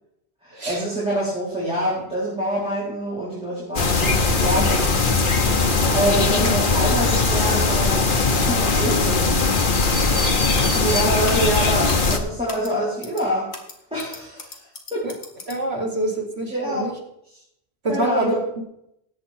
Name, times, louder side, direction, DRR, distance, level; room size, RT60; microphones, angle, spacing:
voice 1, 0.4-4.7 5.9-9.4 10.7-13.5 13.9-15.0 16.5-16.9 17.9-18.3, right 1 dB, 5° right, -8 dB, 4.2 m, -26 dB
sound 1, 3.8-12.2, left 3 dB, 50° left, 1.4 m, -20 dB
sound 2, 4.1-4.2 4.8-5.1 5.7-5.9 6.5-6.7 7.5-7.7 8.2-8.4 9.0-9.3 9.8-10.0 10.5-10.8 11.2-11.5 11.9-12.1 12.5-12.7 13.0-13.2 13.5-15.6, left 2 dB, 75° left, 2.3 m, -38 dB
voice 2, 15.5-16.9 17.8-18.6, right 1 dB, 75° right, -1 dB, 3.0 m, -26 dB
18.5 x 8.5 x 4.5 m, 0.78 s
omnidirectional pair, 1.1 m